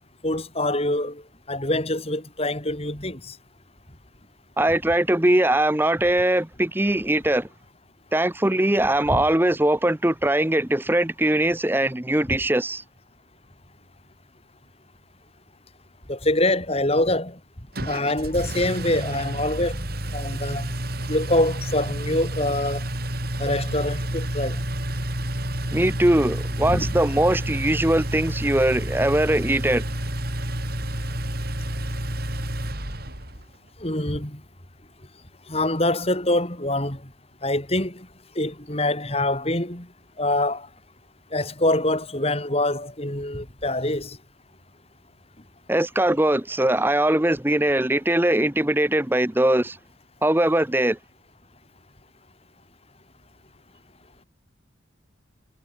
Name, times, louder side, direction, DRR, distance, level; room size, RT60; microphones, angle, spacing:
voice 1, 0.2-1.2 1.5-3.4 9.1-9.2 16.1-17.4 17.8-19.9 20.1-20.7 21.1-22.8 23.4-24.6 26.6-26.9 33.8-34.4 35.5-37.0 37.4-38.1 38.4-39.9 40.2-40.7 41.3-44.2, left 1 dB, 30° left, 4.4 m, -25 dB
voice 2, 4.6-7.5 8.1-12.8 25.7-29.8 45.7-49.8 50.2-51.0, right 1 dB, 10° right, 0.7 m, -21 dB
Engine, 17.7-33.5, right 1 dB, 50° right, 7.2 m, -30 dB
head